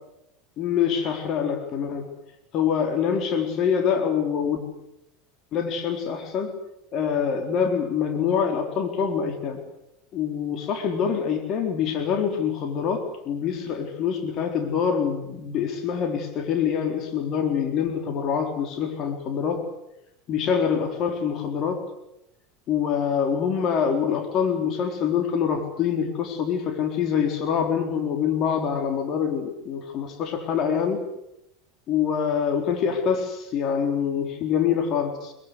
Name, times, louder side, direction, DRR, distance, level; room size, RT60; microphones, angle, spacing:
voice 1, 0.6-2.1 2.5-4.6 5.5-6.5 6.9-9.6 10.1-19.7 20.3-21.8 22.7-31.0 31.9-35.3, left 7 dB, 45° left, 5 dB, 4.0 m, -25 dB
24.0 x 23.0 x 8.2 m, 0.85 s
hypercardioid pair, 85°, 0 cm